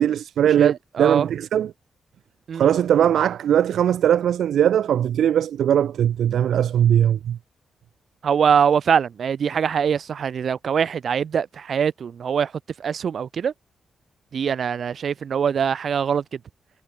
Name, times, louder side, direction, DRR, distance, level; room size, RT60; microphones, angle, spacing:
voice 1, 0.0-1.7 2.5-7.4, right 10 dB, 80° right, 0.9 m, -20 dB
voice 2, 0.6-1.3 2.5-2.7 8.2-12.5 12.8-13.5 14.3-16.4, right 7 dB, 55° right, 2.4 m, -23 dB
wide cardioid pair, 135°, 0 cm